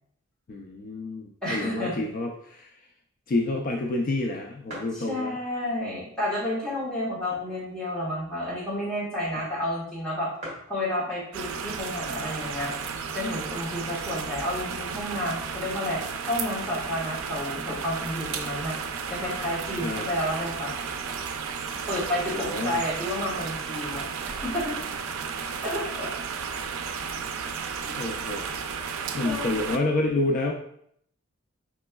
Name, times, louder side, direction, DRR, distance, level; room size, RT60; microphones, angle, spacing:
voice 1, 0.5-2.7 3.3-5.4 19.8-20.1 22.3-22.8 28.0-28.5 29.1-30.5, left 2 dB, 40° left, 1 dB, 0.3 m, -28 dB
voice 2, 1.4-2.0 4.9-10.3 10.7-12.7 13.1-18.8 19.1-20.7 21.9-24.8 25.6-26.1 26.7-26.8 27.9-28.0 29.2-29.9, left 1 dB, 5° left, -7 dB, 1.4 m, -31 dB
sound 1, 3.7-3.8 4.2-4.3 4.7-5.0 5.7-5.8 6.6-7.7 8.1-8.2 8.4-8.6 9.4-9.5 9.7-9.8 10.1-10.2 10.4-10.8 11.7-12.0 12.6-12.7 12.8-13.6, equal, 35° right, 1.2 m, -43 dB
sound 2, 11.3-29.8, right 6 dB, 90° right, 0.4 m, -33 dB
5.2 x 3.0 x 2.2 m, 0.68 s
head